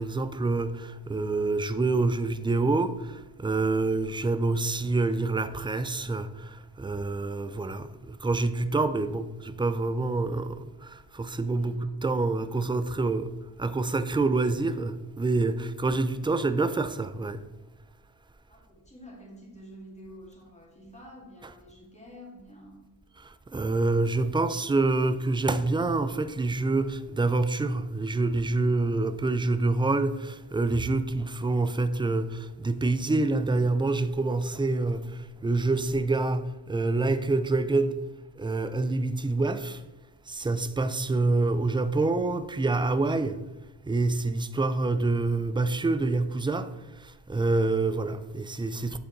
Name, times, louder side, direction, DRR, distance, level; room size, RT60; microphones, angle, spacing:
voice 1, 0.0-13.3 13.6-17.4 23.5-35.0 35.4-38.0 38.4-39.8 40.3-43.4 43.9-46.7 47.0-49.0, right 3 dB, 15° right, 0.3 m, -27 dB
voice 2, 11.5-11.9 18.5-22.8, equal, 15° left, 2.3 m, -48 dB
8.9 x 3.8 x 3.8 m
cardioid pair, 65°, 41 cm